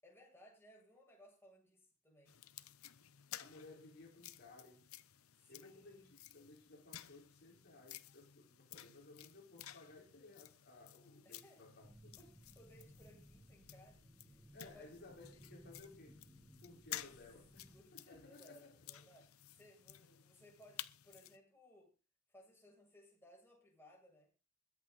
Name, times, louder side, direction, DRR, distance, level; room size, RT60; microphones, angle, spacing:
voice 1, 0.0-2.4 3.7-3.8 5.3-6.1 11.2-11.7 12.2-15.0 17.7-21.9 22.3-24.3, equal, 10° left, 7.3 m, -63 dB
sound 1, 2.3-21.4, left 12 dB, 75° left, 0.9 m, -54 dB
voice 2, 3.4-4.9 5.5-12.1 14.5-16.2 16.6-18.8, left 2 dB, 50° left, 4.6 m, -59 dB
sound 2, 11.8-17.9, equal, 10° right, 1.3 m, -62 dB
22.0 x 8.4 x 4.0 m
head